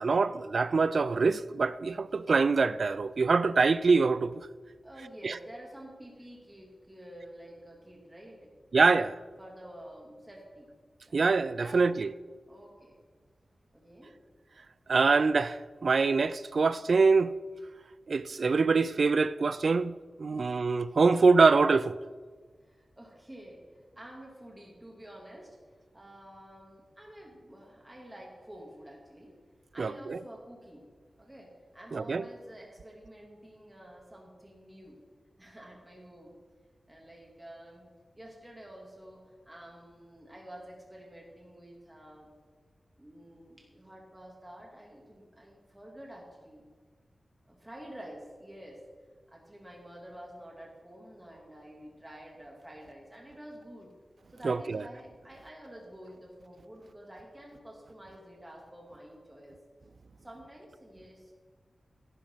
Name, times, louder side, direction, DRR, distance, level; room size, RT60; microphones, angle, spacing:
voice 1, 0.0-4.4 5.2-5.3 8.7-9.2 11.1-12.1 14.9-17.3 18.1-19.9 20.2-22.0 29.8-30.2 31.9-32.2 54.4-54.8, right 4 dB, 60° right, 0.4 m, -24 dB
voice 2, 4.8-8.5 9.4-10.7 11.0-11.2 11.6-12.1 12.5-12.9 13.7-14.1 20.3-20.7 22.6-29.3 29.7-30.9 31.2-35.0 35.4-36.4 36.9-42.3 43.0-46.6 47.5-48.8 49.3-53.9 54.3-59.6 60.2-61.4, right 1 dB, 15° right, 3.1 m, -49 dB
17.0 x 11.0 x 4.1 m
wide cardioid pair, 110°, 0 cm